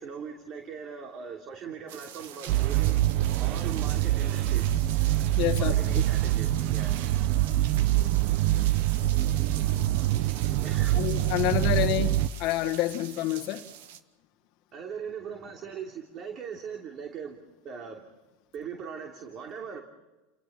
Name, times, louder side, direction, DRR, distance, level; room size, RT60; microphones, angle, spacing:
voice 1, 0.0-3.0 3.4-4.8 5.6-7.0 10.6-11.0 14.7-18.1 18.5-19.8, right 6 dB, 40° right, 3 dB, 3.0 m, -40 dB
sound 1, 1.9-14.0, right 9 dB, 75° right, 1.7 m, -44 dB
sound 2, 2.5-12.3, right 14 dB, 55° right, 0.9 m, -25 dB
voice 2, 5.4-5.8 10.9-13.6, left 15 dB, 55° left, 3 dB, 1.4 m, -28 dB
30.0 x 18.5 x 7.3 m, 1.1 s
supercardioid pair, 130°, 0 cm